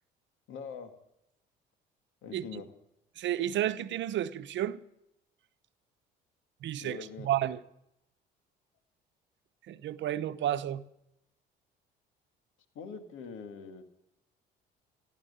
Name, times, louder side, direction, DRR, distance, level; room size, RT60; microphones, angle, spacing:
voice 1, 0.5-0.9 2.2-2.7 6.8-7.3 12.8-13.8, left 6 dB, 70° left, 2.1 m, -43 dB
voice 2, 2.3-2.6 3.2-4.8 6.6-7.0 7.2-7.6 9.7-10.8, right 12 dB, 60° right, 0.9 m, -31 dB
15.0 x 12.5 x 6.7 m
supercardioid pair, 70°, 21 cm